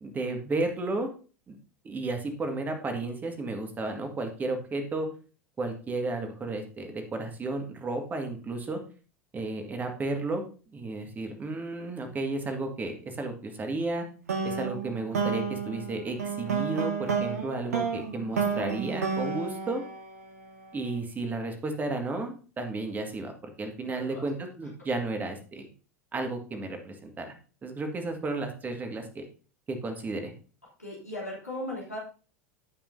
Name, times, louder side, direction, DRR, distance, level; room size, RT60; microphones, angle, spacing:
voice 1, 0.0-1.1 1.5-1.6 1.8-5.1 5.6-8.8 9.3-10.4 10.7-14.0 14.4-19.8 20.7-25.7 26.1-27.3 27.6-29.2 29.7-30.3, right 2 dB, 20° right, 5 dB, 1.9 m, -33 dB
sound 1, 14.3-20.7, right 5 dB, 70° right, 1.6 m, -31 dB
voice 2, 23.8-24.2 30.8-32.0, left 1 dB, 85° left, -5 dB, 3.1 m, -37 dB
15.0 x 5.6 x 2.7 m, 0.37 s
figure-of-eight pair, 80°, 8 cm